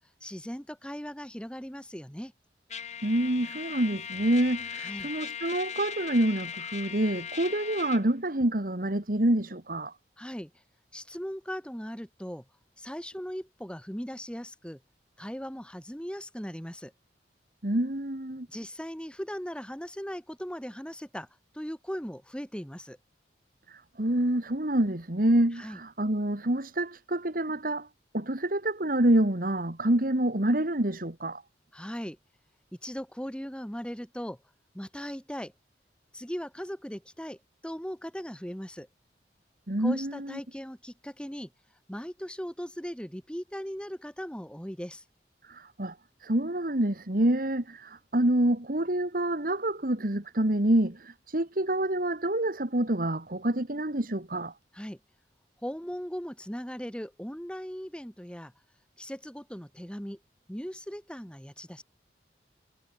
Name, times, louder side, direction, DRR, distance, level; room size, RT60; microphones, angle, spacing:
voice 1, 0.2-2.3 4.8-5.1 10.2-10.6 10.9-12.4 12.8-14.8 15.2-16.9 18.5-21.3 21.5-23.0 25.5-25.8 31.7-32.2 32.8-34.4 34.7-35.5 36.1-37.4 37.6-38.9 39.8-41.5 41.9-45.0 54.7-55.0 55.6-58.5 59.0-60.2 60.5-61.8, equal, 5° left, 2.2 m, -38 dB
Trumpet, 2.7-8.0, left 8 dB, 40° left, 3.1 m, -39 dB
voice 2, 3.0-9.9 17.6-18.5 23.7-27.9 28.1-31.4 39.7-40.4 45.4-54.5, right 1 dB, 50° right, 2.0 m, -27 dB
head